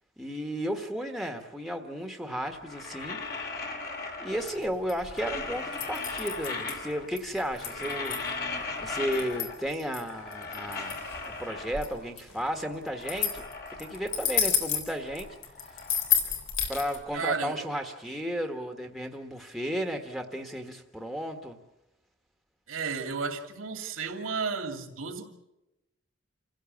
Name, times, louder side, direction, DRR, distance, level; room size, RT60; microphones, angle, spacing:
voice 1, 0.2-3.2 4.2-8.2 8.8-13.4 13.8-15.4 15.7-15.8 16.7-21.6, equal, ahead, 4 dB, 1.4 m, -34 dB
sound 1, 2.5-4.7 5.0-7.2 7.5-9.7 10.0-12.1 12.5-14.5 14.8-17.0, left 3 dB, 50° left, 2.7 m, -38 dB
sound 2, 4.3-17.0, left 8 dB, 80° left, 3.9 m, -32 dB
voice 2, 17.1-17.6 22.7-25.3, right 5 dB, 90° right, 5 dB, 2.7 m, -33 dB
27.5 x 16.0 x 7.3 m, 0.93 s
head